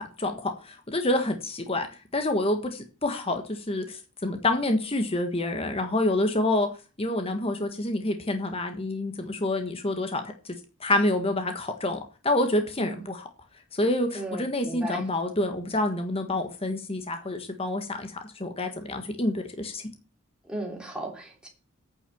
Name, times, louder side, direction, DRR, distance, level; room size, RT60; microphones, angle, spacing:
voice 1, 0.0-1.9 2.1-6.7 7.0-10.2 10.8-13.3 13.7-19.8, left 1 dB, 30° left, 6 dB, 1.4 m, -27 dB
voice 2, 14.1-15.0 20.5-21.5, right 1 dB, 5° right, -1 dB, 3.2 m, -35 dB
9.1 x 6.2 x 8.5 m, 0.33 s
head